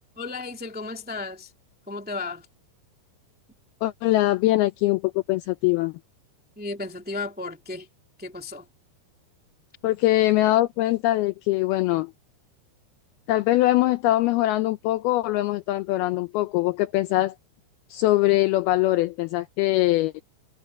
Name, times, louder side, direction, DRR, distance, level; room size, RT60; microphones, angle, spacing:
voice 1, 0.1-1.5 1.9-2.4 6.5-7.9 8.2-8.6, left 3 dB, 15° right, 0.3 m, -34 dB
voice 2, 3.8-5.9 9.8-12.1 13.3-17.3 17.9-20.2, left 17 dB, 90° left, 2.2 m, -22 dB
omnidirectional pair, 5.2 m